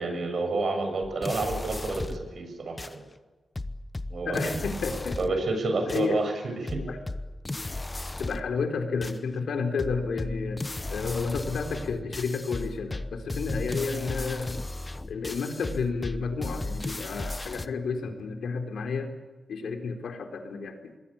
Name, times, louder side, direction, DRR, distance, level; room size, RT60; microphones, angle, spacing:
voice 1, 0.0-3.0 4.1-4.5 5.2-6.3 6.6-6.8, right 2 dB, 60° right, 6 dB, 7.1 m, -29 dB
sound 1, 1.0-2.3 2.8-2.9 3.6-5.5 5.9-6.1 6.7-8.6 9.0-9.2 9.8-17.7, left 2 dB, 20° left, 1.2 m, -35 dB
voice 2, 4.2-5.4 5.8-6.2 6.9-7.0 8.2-14.6 15.1-19.1 19.5-20.9, left 4 dB, 90° left, 5 dB, 4.0 m, -31 dB
26.0 x 21.0 x 8.7 m, 1.3 s
wide cardioid pair, 110°, 0 cm